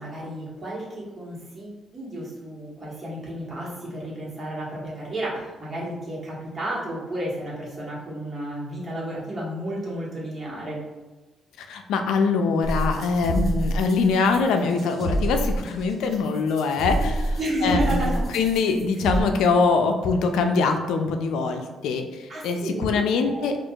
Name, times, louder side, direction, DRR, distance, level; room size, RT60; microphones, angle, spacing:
voice 1, 0.0-10.8 17.4-18.2 22.3-23.4, right 1 dB, 40° right, -5 dB, 1.3 m, -32 dB
voice 2, 11.6-18.0 18.3-23.6, left 4 dB, 85° left, 5 dB, 0.3 m, -23 dB
sound 1, 12.6-19.2, right 1 dB, 60° right, 1.4 m, -27 dB
4.4 x 2.4 x 2.3 m, 1.2 s
cardioid pair, 90°, 0 cm